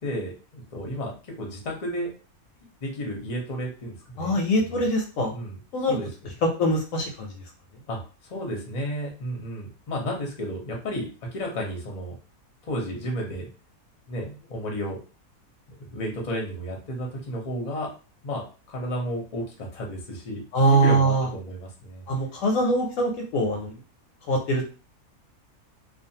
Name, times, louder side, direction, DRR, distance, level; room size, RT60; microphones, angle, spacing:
voice 1, 0.0-2.1 2.8-4.4 4.6-4.9 5.3-5.6 5.9-6.1 7.9-8.0 8.3-11.0 11.3-12.1 12.6-13.5 14.1-15.0 15.7-17.9 18.2-18.4 18.7-22.1, equal, 35° left, 0 dB, 0.7 m, -32 dB
voice 2, 4.2-5.3 5.7-6.0 6.4-7.3 20.5-21.3 22.1-23.7 24.3-24.6, right 1 dB, 70° left, 1 dB, 0.9 m, -23 dB
2.4 x 2.4 x 2.7 m, 0.35 s
omnidirectional pair, 1.6 m